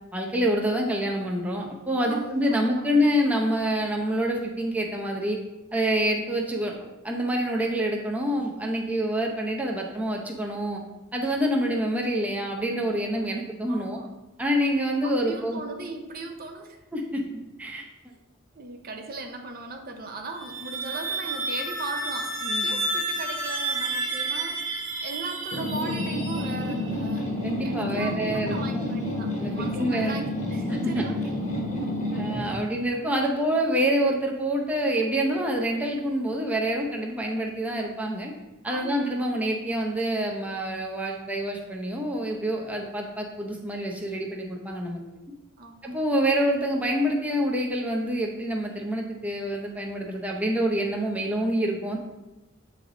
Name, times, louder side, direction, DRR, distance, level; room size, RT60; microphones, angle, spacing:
voice 1, 0.1-5.4 5.7-6.7 7.0-10.8 11.1-14.0 14.4-15.6 16.9-17.2 17.6-17.8 22.5-22.8 27.4-28.8 29.4-30.1 30.7-31.0 32.1-38.3 38.6-45.0 45.8-52.0, equal, 5° right, -1 dB, 0.6 m, -27 dB
voice 2, 2.0-2.9 13.7-14.1 15.0-16.8 18.6-27.3 27.6-31.3 32.4-32.6 32.9-33.6 38.7-39.3 45.6-45.9, right 3 dB, 45° right, 4 dB, 0.6 m, -38 dB
sound 1, 20.3-26.9, right 2 dB, 90° right, 1.3 m, -31 dB
sound 2, 25.5-32.6, left 1 dB, 35° left, 1.1 m, -29 dB
8.2 x 3.4 x 3.7 m, 1.1 s
head